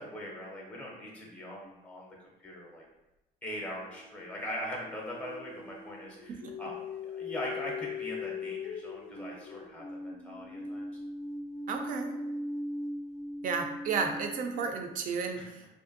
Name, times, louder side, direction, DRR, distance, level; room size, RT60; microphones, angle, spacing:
voice 1, 0.0-2.8 3.4-6.7 7.0-10.8 15.4-15.5, equal, 5° left, -2 dB, 0.5 m, -41 dB
sound 1, 1.6-1.8 3.7-14.8, left 3 dB, 70° left, 0.4 m, -40 dB
voice 2, 11.7-12.1 13.4-15.8, right 5 dB, 55° right, 5 dB, 0.4 m, -33 dB
2.5 x 2.2 x 2.5 m, 0.97 s
cardioid pair, 110°, 17 cm